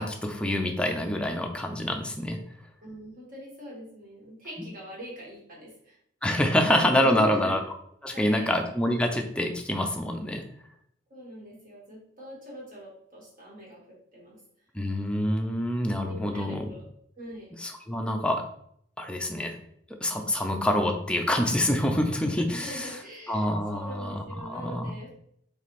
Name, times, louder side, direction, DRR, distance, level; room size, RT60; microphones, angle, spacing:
voice 1, 0.0-2.4 6.2-7.6 8.0-10.4 14.7-16.7 17.6-18.4 19.0-19.6 20.0-22.9 23.3-24.2 24.5-24.9, left 1 dB, 5° left, 3 dB, 0.5 m, -26 dB
voice 2, 2.8-6.0 6.9-7.5 8.1-8.5 11.1-14.4 16.0-16.8 17.2-17.5 22.5-25.1, equal, 50° right, -4 dB, 1.7 m, -42 dB
4.2 x 3.3 x 3.1 m, 0.69 s
head